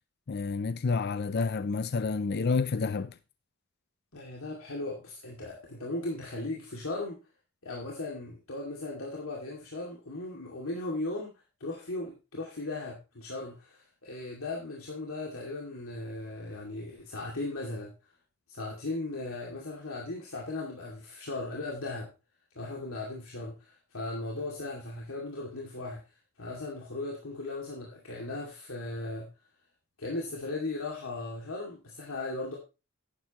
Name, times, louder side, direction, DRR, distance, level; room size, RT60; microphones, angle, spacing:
voice 1, 0.3-3.1, left 4 dB, 50° left, 0.5 m, -29 dB
voice 2, 4.1-7.2 7.6-11.3 11.6-17.9 18.5-22.1 22.5-26.0 26.4-29.3 30.0-32.6, left 2 dB, 80° left, 2.4 m, -37 dB
11.0 x 9.7 x 3.0 m
head